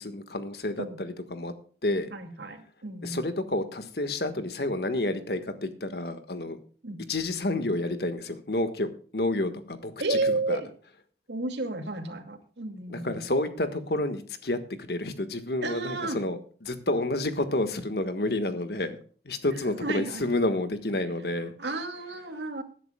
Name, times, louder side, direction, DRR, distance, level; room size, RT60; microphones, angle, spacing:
voice 1, 0.0-1.5 1.8-2.1 3.0-6.6 7.1-10.6 12.9-19.0 19.2-21.5, left 2 dB, 70° left, 10 dB, 1.5 m, -30 dB
voice 2, 2.1-3.2 6.8-7.0 10.0-10.7 11.3-13.2 15.6-16.2 19.7-20.3 21.6-22.6, right 2 dB, 90° right, 6 dB, 2.4 m, -32 dB
20.0 x 10.5 x 2.3 m, 0.44 s
head